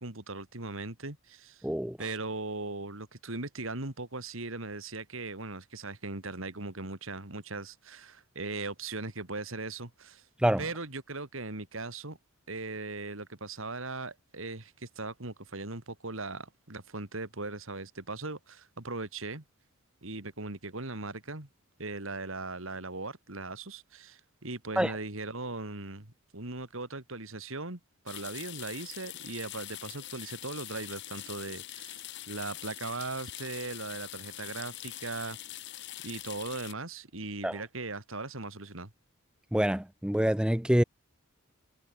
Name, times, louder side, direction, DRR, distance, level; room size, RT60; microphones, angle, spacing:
voice 1, 0.0-1.7 2.0-10.3 10.6-12.2 12.5-19.4 20.0-21.5 21.8-27.8 28.0-35.6 36.0-38.9, right 3 dB, 70° right, 3.0 m, -39 dB
voice 2, 1.6-2.0 10.4-10.6 24.8-24.9 37.4-37.5 39.5-40.8, equal, 5° right, 0.5 m, -26 dB
sound 1, 28.1-36.7, left 14 dB, 55° left, 0.9 m, -43 dB
head